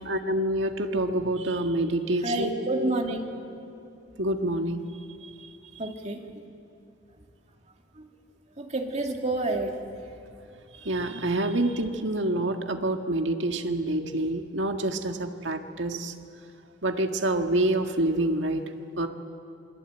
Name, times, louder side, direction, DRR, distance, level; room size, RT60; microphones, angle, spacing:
voice 1, 0.0-2.5 4.2-4.9 10.8-16.1 16.8-19.1, right 1 dB, 80° right, 5 dB, 1.8 m, -27 dB
voice 2, 2.2-3.2 5.8-6.2 8.6-9.8, right 2 dB, 40° right, 2 dB, 2.6 m, -28 dB
27.5 x 22.5 x 9.2 m, 2.7 s
head